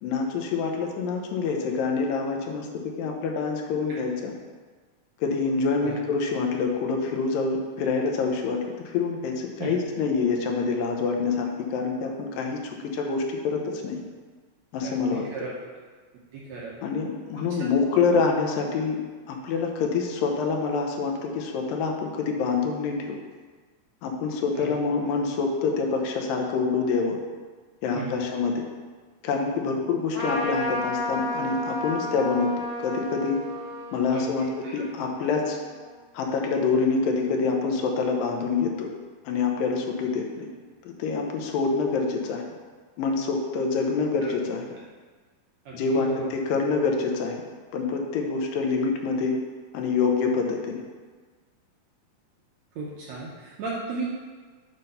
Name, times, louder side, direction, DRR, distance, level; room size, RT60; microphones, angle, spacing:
voice 1, 0.0-4.3 5.2-8.6 8.9-14.0 14.7-15.3 16.8-19.0 19.3-23.2 24.0-27.2 27.8-28.6 29.2-32.5 32.8-33.4 33.9-35.6 36.1-38.9 39.3-40.5 41.0-42.4 43.0-44.7 45.7-47.4 47.7-49.4 49.7-50.8, left 4 dB, 80° left, 1 dB, 2.5 m, -26 dB
voice 2, 14.8-15.5 16.3-16.7 17.4-17.5 24.5-24.7 27.9-28.2 34.1-34.8 45.6-46.3 52.7-54.0, right 4 dB, 70° right, -5 dB, 1.7 m, -35 dB
Trumpet, 30.1-36.0, left 1 dB, 50° left, 1.5 m, -33 dB
7.7 x 4.0 x 5.4 m, 1.5 s
omnidirectional pair, 4.1 m